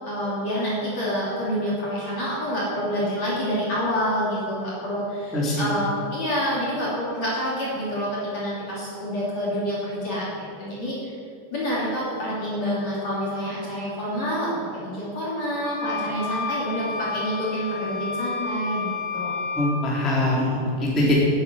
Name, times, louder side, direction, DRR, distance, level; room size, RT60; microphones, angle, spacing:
voice 1, 0.0-11.2 11.5-19.3, equal, 40° left, -8 dB, 3.4 m, -27 dB
voice 2, 5.3-5.6 19.6-21.1, left 1 dB, ahead, -7 dB, 2.5 m, -23 dB
sound 1, 15.6-19.8, left 4 dB, 65° left, 2.8 m, -31 dB
10.5 x 10.0 x 9.1 m, 2.5 s
omnidirectional pair, 5.8 m